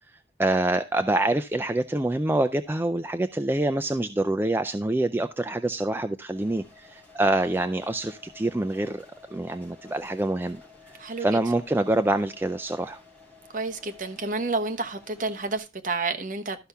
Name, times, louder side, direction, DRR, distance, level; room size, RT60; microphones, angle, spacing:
voice 1, 0.4-9.1 9.3-10.6 11.2-13.0, right 1 dB, 10° right, 0.4 m, -26 dB
sound 1, 6.3-15.6, left 4 dB, 10° left, 3.4 m, -52 dB
voice 2, 13.5-16.6, right 3 dB, 45° right, 1.1 m, -30 dB
13.0 x 5.6 x 3.5 m
head